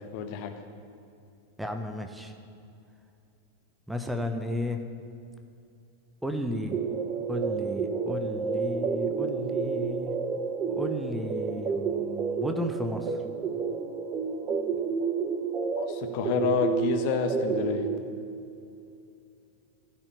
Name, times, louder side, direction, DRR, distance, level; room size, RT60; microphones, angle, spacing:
voice 1, 0.1-0.5 15.7-17.9, left 5 dB, 45° left, 5 dB, 1.3 m, -28 dB
voice 2, 1.6-2.3 3.9-4.8 6.2-6.8 7.3-10.1 10.7-13.2, left 1 dB, 5° right, 5 dB, 1.0 m, -33 dB
sound 1, 6.7-18.0, right 5 dB, 30° right, 1.1 m, -30 dB
15.5 x 5.9 x 9.9 m, 2.5 s
figure-of-eight pair, 90°, 0 cm